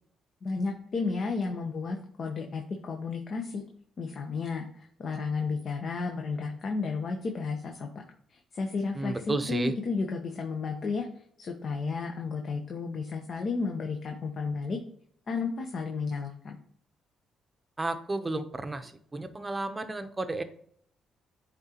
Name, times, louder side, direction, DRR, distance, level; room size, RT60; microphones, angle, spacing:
voice 1, 0.4-3.6 4.0-7.9 8.3-11.1 11.4-14.8 15.3-16.6, left 4 dB, 50° left, 3 dB, 0.8 m, -32 dB
voice 2, 9.0-9.7 17.8-20.4, right 2 dB, 20° right, 9 dB, 0.7 m, -32 dB
8.6 x 3.7 x 2.9 m, 0.62 s
cardioid pair, 90°, 0 cm